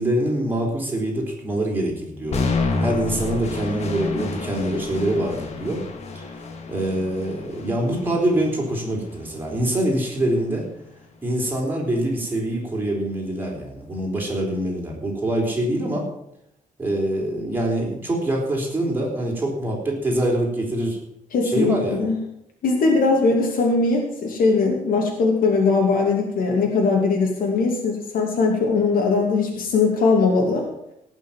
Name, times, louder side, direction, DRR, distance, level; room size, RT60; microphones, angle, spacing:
voice 1, 0.0-2.4 2.8-5.8 6.1-6.4 6.7-10.7 11.2-16.1 16.8-21.0 21.4-22.0, right 1 dB, 15° right, -2 dB, 4.0 m, -24 dB
sound 1, 2.3-10.3, left 3 dB, 50° left, 1.9 m, -30 dB
voice 2, 21.3-22.2 22.6-30.7, left 4 dB, 85° left, 0 dB, 2.8 m, -20 dB
18.0 x 6.2 x 7.4 m, 0.78 s
wide cardioid pair, 175°, 14 cm